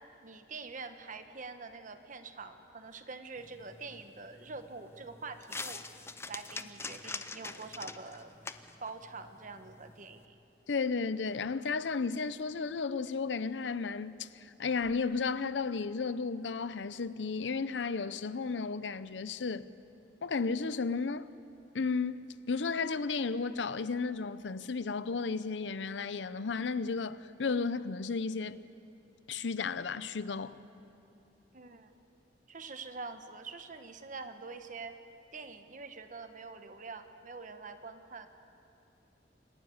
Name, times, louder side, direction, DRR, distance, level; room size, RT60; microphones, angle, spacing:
voice 1, 0.2-5.8 6.3-8.3 8.8-10.3 31.5-31.9 32.5-35.0 35.3-38.3, right 4 dB, 45° right, 1.1 m, -45 dB
sound 1, 3.4-10.3, left 3 dB, 15° left, 0.6 m, -45 dB
voice 2, 10.7-19.7 20.2-21.3 21.7-28.6 29.3-30.6, left 4 dB, 85° left, 0.6 m, -33 dB
sound 2, 14.8-18.7, left 1 dB, 10° right, 2.3 m, -54 dB
27.0 x 12.0 x 9.6 m
head